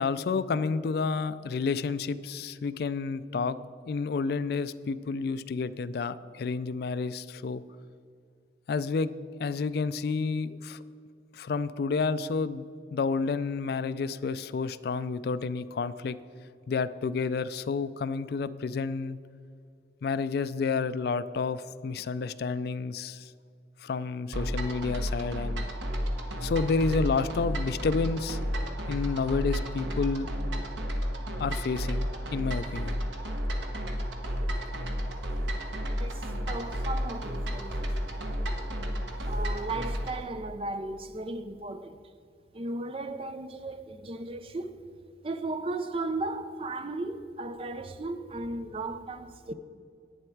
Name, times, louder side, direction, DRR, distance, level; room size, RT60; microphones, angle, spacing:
voice 1, 0.0-3.6 3.9-7.6 8.7-9.1 9.4-10.8 11.3-16.2 16.7-19.2 20.0-23.3 23.8-25.6 26.4-28.4 28.9-30.3 31.4-32.1 32.3-33.0, left 4 dB, 60° left, 0.3 m, -30 dB
sound 1, 24.3-40.2, equal, 85° right, 1.2 m, -32 dB
voice 2, 36.0-38.3 39.3-42.0 42.5-44.9 45.2-49.5, right 2 dB, 30° right, 0.5 m, -36 dB
11.0 x 8.8 x 4.6 m
head